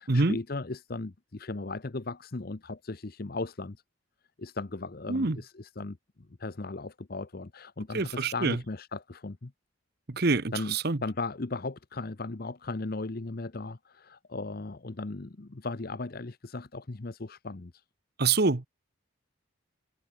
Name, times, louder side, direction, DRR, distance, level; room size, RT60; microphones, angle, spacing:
voice 1, 0.0-3.8 4.4-6.0 6.4-9.5 10.5-10.8 11.0-17.7, left 3 dB, 45° left, 0.8 m, -37 dB
voice 2, 7.9-8.6 10.1-11.0 18.2-18.7, right 3 dB, 50° right, 1.0 m, -26 dB
head